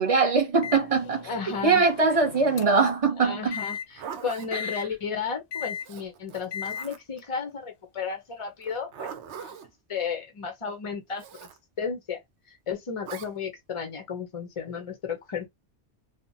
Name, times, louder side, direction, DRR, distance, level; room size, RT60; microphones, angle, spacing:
voice 1, 0.0-1.3 1.6-3.6 4.5-4.6, right 4 dB, 35° right, 0.8 m, -22 dB
Microwave oven, 0.6-2.9 3.5-3.8 4.5-4.8 5.5-5.9 6.5-6.8, left 8 dB, 75° left, 0.8 m, -36 dB
voice 2, 1.3-1.8 3.2-9.1 9.4-9.5 9.9-11.2 11.8-12.2 12.5-15.5, left 6 dB, 40° left, 0.5 m, -33 dB
Zipper (clothing), 3.7-4.5 5.8-7.2 8.6-9.7 11.2-11.6 13.0-13.3, right 7 dB, 75° right, 0.9 m, -41 dB
2.8 x 2.0 x 2.6 m
omnidirectional pair, 1.2 m